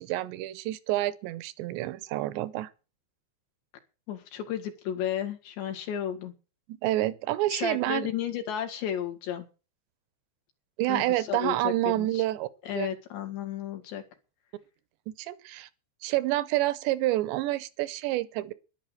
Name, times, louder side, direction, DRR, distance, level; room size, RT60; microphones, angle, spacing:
voice 1, 0.0-2.7 6.7-8.1 10.8-12.5 12.7-12.9 15.1-15.7 16.0-18.5, right 16 dB, 80° right, 2.9 m, -28 dB
voice 2, 4.1-6.3 7.5-9.5 10.9-12.2 12.6-14.0, left 10 dB, 70° left, 4.1 m, -33 dB
11.0 x 11.0 x 7.8 m
omnidirectional pair, 5.4 m